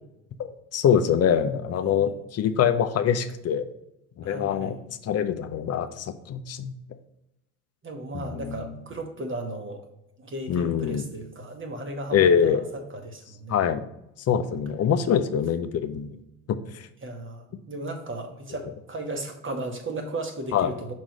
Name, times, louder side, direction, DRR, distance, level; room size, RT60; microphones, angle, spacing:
voice 1, 0.4-3.7 4.2-6.7 8.1-8.8 10.5-11.0 12.1-12.6 13.5-13.9 14.3-16.1 16.5-16.9 20.5-20.7, left 8 dB, 35° left, 10 dB, 0.6 m, -24 dB
voice 2, 1.8-2.2 4.2-4.8 7.8-9.9 10.2-13.6 17.0-20.9, right 2 dB, 30° right, 4 dB, 1.2 m, -35 dB
5.9 x 3.1 x 5.2 m, 0.86 s
hypercardioid pair, 60°, 42 cm